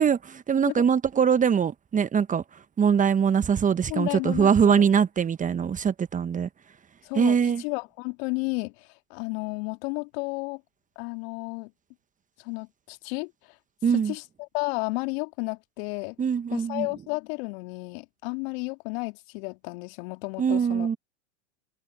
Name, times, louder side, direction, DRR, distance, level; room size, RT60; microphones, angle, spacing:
voice 1, 0.0-6.5 7.1-7.6 13.8-14.1 16.2-16.9 20.4-21.0, right 7 dB, 20° right, 1.2 m, -23 dB
voice 2, 3.9-4.9 7.0-10.6 11.0-11.7 12.4-13.6 13.9-16.2 16.5-20.9, left 30 dB, 55° left, 2.3 m, -33 dB
hypercardioid pair, 90°, 35 cm